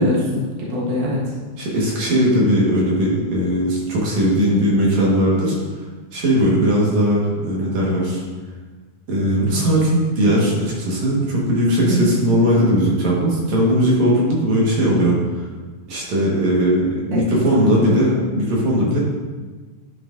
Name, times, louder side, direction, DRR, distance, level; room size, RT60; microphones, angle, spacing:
voice 1, 0.0-1.3 11.8-12.5 17.1-17.2 17.5-18.1 18.8-18.9, equal, 45° right, -6 dB, 1.6 m, -23 dB
voice 2, 1.6-5.6 6.1-8.2 9.1-15.2 15.9-19.0, equal, 65° right, -4 dB, 2.5 m, -18 dB
10.0 x 6.0 x 2.5 m, 1.3 s
omnidirectional pair, 3.7 m